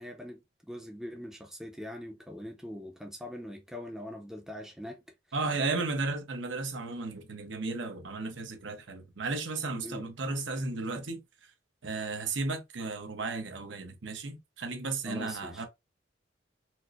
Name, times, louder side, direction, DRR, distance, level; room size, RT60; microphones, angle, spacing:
voice 1, 0.0-5.0 9.8-10.1 15.0-15.7, equal, ahead, 0.5 m, -42 dB
voice 2, 5.3-11.2 11.8-15.7, right 3 dB, 80° right, 0.8 m, -34 dB
4.4 x 2.0 x 2.5 m
head